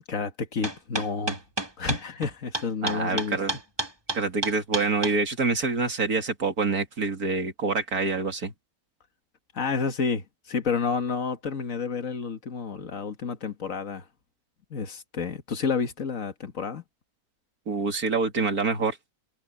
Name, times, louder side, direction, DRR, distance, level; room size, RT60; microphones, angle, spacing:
voice 1, 0.1-1.4 1.8-3.4 9.5-14.0 14.7-16.8, left 5 dB, 60° left, 2.0 m, -30 dB
sound 1, 0.6-5.1, right 2 dB, 15° right, 1.8 m, -30 dB
voice 2, 2.8-3.5 4.1-8.5 17.7-19.0, right 4 dB, 75° right, 3.0 m, -26 dB
omnidirectional pair, 1.6 m